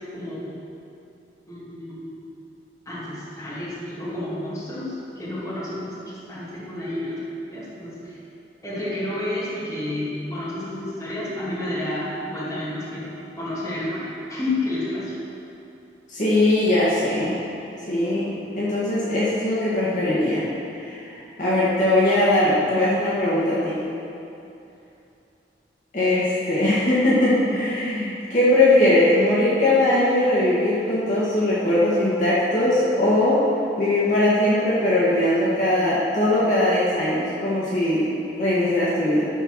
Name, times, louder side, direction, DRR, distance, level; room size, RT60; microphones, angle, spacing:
voice 1, 0.1-0.5 1.5-2.2 2.9-6.0 6.3-7.2 7.5-8.2 8.6-15.2, left 1 dB, 20° left, -9 dB, 2.4 m, -30 dB
voice 2, 16.1-17.3 17.9-20.4 20.8-21.0 21.4-23.8 25.9-33.4 33.8-38.1 38.4-39.2, left 1 dB, 45° left, -9 dB, 1.9 m, -20 dB
13.0 x 4.6 x 6.2 m, 2.7 s
head